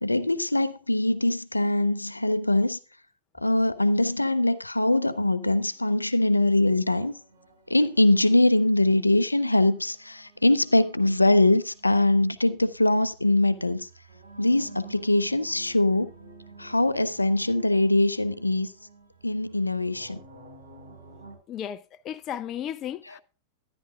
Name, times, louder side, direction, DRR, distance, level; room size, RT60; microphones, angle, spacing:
voice 1, 0.0-2.8 3.4-7.1 7.7-13.9 14.4-16.1 16.6-18.7 19.2-20.2, left 2 dB, 90° left, 0.6 m, -22 dB
sound 1, 4.8-21.4, right 3 dB, 70° right, 4.7 m, -51 dB
voice 2, 21.5-23.2, left 10 dB, 35° left, 0.6 m, -34 dB
13.0 x 10.5 x 2.4 m
figure-of-eight pair, 95°, 0 cm